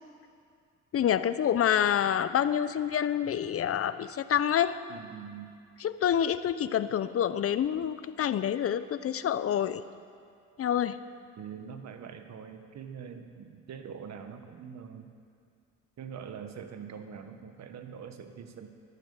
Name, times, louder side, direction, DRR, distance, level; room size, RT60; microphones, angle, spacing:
voice 1, 0.9-4.8 5.8-9.8 10.6-11.0, left 9 dB, 50° left, 14 dB, 0.7 m, -27 dB
voice 2, 4.9-5.5 11.4-15.1 16.0-18.7, right 7 dB, 65° right, 7 dB, 1.4 m, -43 dB
12.0 x 11.5 x 8.6 m, 2.3 s
cardioid pair, 90°, 30 cm